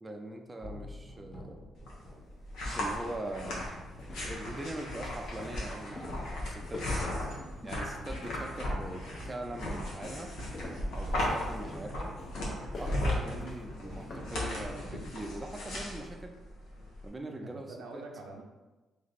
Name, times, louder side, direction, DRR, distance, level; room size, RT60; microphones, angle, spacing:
voice 1, 0.0-1.7 2.7-3.9 4.2-7.1 7.6-10.3 10.9-12.1 12.8-16.4 17.0-18.0, right 1 dB, 20° right, 3 dB, 0.4 m, -42 dB
sound 1, 0.6-15.9, left 1 dB, 25° left, 1.2 m, -49 dB
sound 2, 1.8-17.1, left 1 dB, 85° left, 1.1 m, -36 dB
sound 3, 2.0-2.1 2.6-2.7 3.2-8.7 9.0-9.4 10.0-14.4, left 2 dB, 45° left, 0.8 m, -46 dB
voice 2, 17.3-18.4, right 3 dB, 80° right, 1 dB, 0.7 m, -45 dB
3.4 x 3.0 x 4.0 m, 1.1 s
cardioid pair, 90°, 0 cm